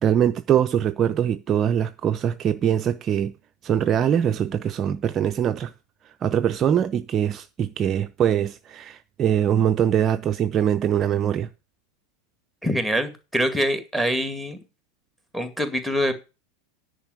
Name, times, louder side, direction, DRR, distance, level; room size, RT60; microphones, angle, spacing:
voice 1, 0.0-3.3 3.6-5.7 6.2-11.5, right 9 dB, 30° right, 0.5 m, -22 dB
voice 2, 12.6-14.6 15.3-16.1, equal, 5° left, 2.1 m, -24 dB
10.0 x 5.1 x 8.1 m
figure-of-eight pair, 85°, 0 cm